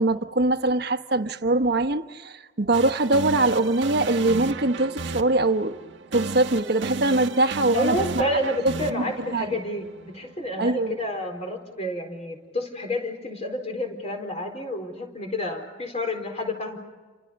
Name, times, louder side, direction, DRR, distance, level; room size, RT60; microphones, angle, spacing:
voice 1, 0.0-5.8 6.1-8.2 8.6-9.1 9.3-9.5 10.6-11.0, right 2 dB, 60° right, 9 dB, 1.2 m, -23 dB
sound 1, 2.7-10.6, right 3 dB, 85° right, 1.3 m, -34 dB
voice 2, 7.7-16.8, left 1 dB, 35° left, 4 dB, 4.5 m, -29 dB
29.0 x 27.5 x 5.4 m, 1.4 s
head